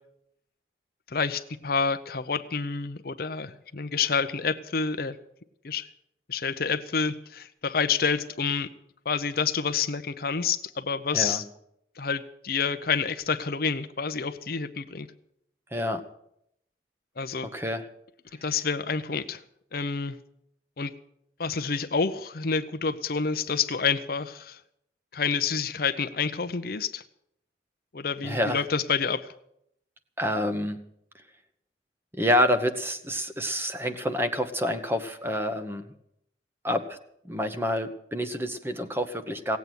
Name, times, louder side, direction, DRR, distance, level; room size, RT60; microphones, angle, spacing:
voice 1, 1.1-5.2 5.6-5.9 6.3-8.7 9.1-11.4 12.0-15.1 17.2-17.5 18.4-19.4 19.7-20.2 20.8-20.9 21.4-24.6 25.1-27.0 27.9-29.3, left 5 dB, 50° left, 10 dB, 0.7 m, -28 dB
voice 2, 15.7-16.0 17.5-17.8 28.2-28.6 30.2-30.8 32.2-35.9 36.6-37.0 37.2-39.6, equal, 10° right, 8 dB, 1.0 m, -27 dB
17.5 x 8.2 x 9.2 m, 0.76 s
head